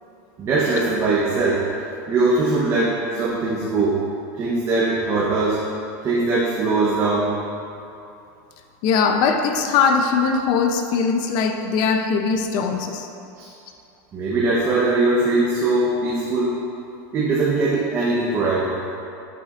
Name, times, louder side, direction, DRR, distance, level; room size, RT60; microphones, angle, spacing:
voice 1, 0.4-1.6 2.1-4.0 4.3-5.6 6.0-7.3 13.4-13.5 14.1-16.6 17.1-18.8, right 3 dB, 30° right, -6 dB, 1.0 m, -21 dB
voice 2, 8.8-13.1, left 5 dB, 50° left, 5 dB, 0.7 m, -20 dB
8.2 x 7.8 x 2.5 m, 2.7 s
supercardioid pair, 145°, 9 cm